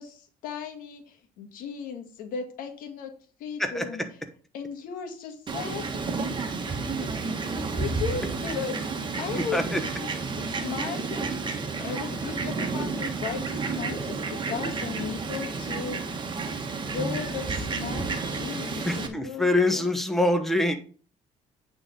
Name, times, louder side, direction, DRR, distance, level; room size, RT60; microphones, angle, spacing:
voice 1, 0.0-3.1 3.4-4.0 4.5-5.8 6.2-6.3 7.0-7.1 7.7-10.1 10.3-16.2 16.8-19.9, left 6 dB, 90° left, 5 dB, 1.6 m, -36 dB
Fowl, 5.5-19.1, right 4 dB, 35° right, 1.3 m, -31 dB
voice 2, 9.3-9.8 18.8-20.7, left 1 dB, ahead, 6 dB, 1.1 m, -25 dB
8.9 x 3.9 x 5.3 m, 0.41 s
cardioid pair, 120°, 14 cm